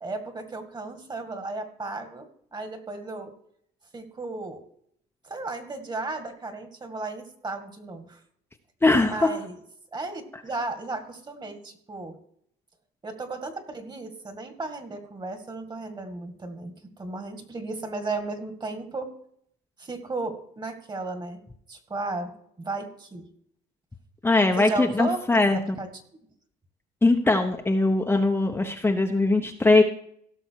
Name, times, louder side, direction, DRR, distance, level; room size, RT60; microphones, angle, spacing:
voice 1, 0.0-3.3 3.9-4.6 5.2-8.2 9.0-9.5 9.9-12.2 13.0-19.1 19.8-21.4 21.7-23.3 24.6-25.2 25.5-25.9, right 3 dB, 25° right, 7 dB, 2.0 m, -34 dB
voice 2, 8.8-9.3 24.2-25.8 27.0-29.8, left 2 dB, 15° left, 3 dB, 0.9 m, -21 dB
16.5 x 6.2 x 4.7 m, 0.66 s
cardioid pair, 110°, 17 cm